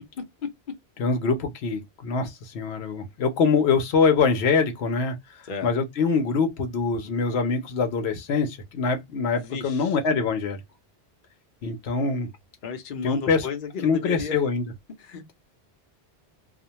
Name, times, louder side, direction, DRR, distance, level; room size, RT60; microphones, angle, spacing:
voice 1, 0.1-0.5 5.4-5.7 9.3-10.0 12.6-14.4 15.0-15.3, left 6 dB, 55° left, 0.8 m, -34 dB
voice 2, 1.0-10.6 11.6-12.3 13.0-13.5 13.8-14.6, left 5 dB, 85° left, 0.9 m, -24 dB
2.4 x 2.1 x 2.8 m
omnidirectional pair, 1.1 m